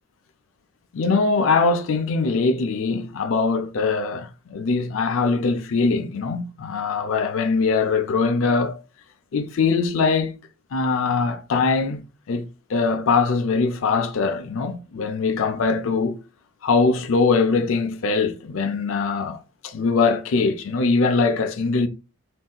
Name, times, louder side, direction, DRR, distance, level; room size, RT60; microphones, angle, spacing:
voice 1, 0.9-8.8 9.3-10.4 10.7-12.0 12.3-16.2 16.6-19.4 19.6-21.9, left 4 dB, 65° left, 0.4 m, -22 dB
3.6 x 2.6 x 2.3 m
head